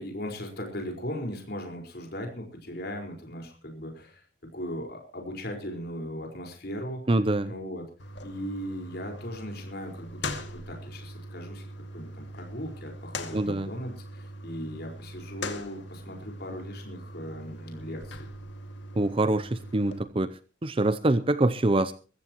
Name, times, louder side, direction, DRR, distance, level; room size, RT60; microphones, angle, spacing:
voice 1, 0.0-4.2 4.5-7.0 7.4-7.9 8.2-18.3, equal, 60° left, 2 dB, 4.8 m, -38 dB
voice 2, 7.1-7.5 13.3-13.7 19.0-20.3 20.6-21.9, right 2 dB, 30° right, 13 dB, 0.6 m, -25 dB
sound 1, 8.0-20.0, left 1 dB, 75° left, 2.2 m, -41 dB
22.5 x 15.0 x 3.0 m, 0.36 s
head